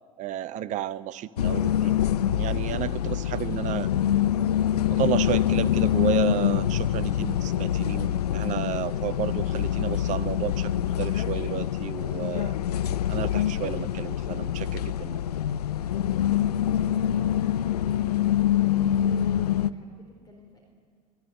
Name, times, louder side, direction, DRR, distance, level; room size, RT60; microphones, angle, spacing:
voice 1, 0.2-1.9 2.4-3.9 4.9-12.6 13.1-15.2, right 12 dB, 40° right, 15 dB, 0.7 m, -32 dB
sound 1, 1.4-19.7, left 11 dB, 80° left, 0.6 m, -25 dB
voice 2, 15.6-20.6, left 2 dB, 20° left, 1 dB, 4.1 m, -52 dB
24.5 x 15.0 x 9.7 m, 2.1 s
figure-of-eight pair, 75°, 20 cm